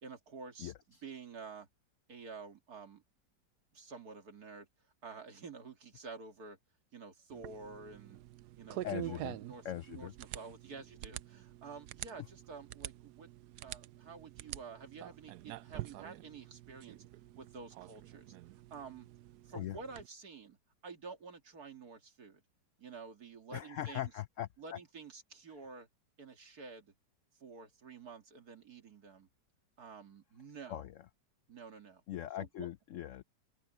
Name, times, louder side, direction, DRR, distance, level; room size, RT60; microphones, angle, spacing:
voice 1, 0.0-0.7 1.0-1.7 2.1-3.0 3.7-4.7 5.0-6.6 6.9-8.2 8.6-13.3 13.6-17.0 17.4-18.4 18.7-19.1 19.5-20.6 20.8-22.4 22.8-24.1 24.6-25.9 26.2-26.9 27.4-29.3 29.8-30.8 31.5-32.0 32.4-32.7, right 4 dB, 60° right, 2.7 m, -50 dB
voice 2, 0.6-1.0 8.8-9.4 9.6-10.1 19.5-19.8 23.5-24.8 30.7-30.9 32.1-33.2, left 12 dB, 80° left, 0.7 m, -41 dB
sound 1, 7.3-20.1, right 14 dB, 75° right, 1.1 m, -47 dB
open air
omnidirectional pair, 1.9 m